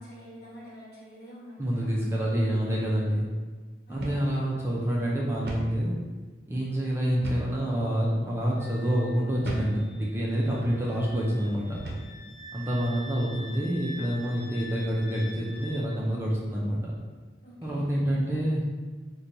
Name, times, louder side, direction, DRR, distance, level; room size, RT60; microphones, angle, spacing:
voice 1, 0.0-2.1 3.9-4.5 6.6-6.9 17.4-17.8, equal, 60° left, -8 dB, 1.2 m, -47 dB
voice 2, 1.6-3.3 3.9-5.9 6.5-11.8 12.5-16.9 17.6-18.6, equal, 15° right, -5 dB, 0.4 m, -27 dB
sound 1, 4.0-4.3 4.6-4.7 5.5-5.8 7.2-7.6 8.3-8.5 9.4-9.8 10.5-10.7 11.8-12.1, right 1 dB, 65° right, 0.6 m, -36 dB
Wind instrument woodwind instrument, 8.5-15.8, left 1 dB, 90° left, 0.9 m, -46 dB
4.2 x 2.2 x 2.6 m, 1.4 s
head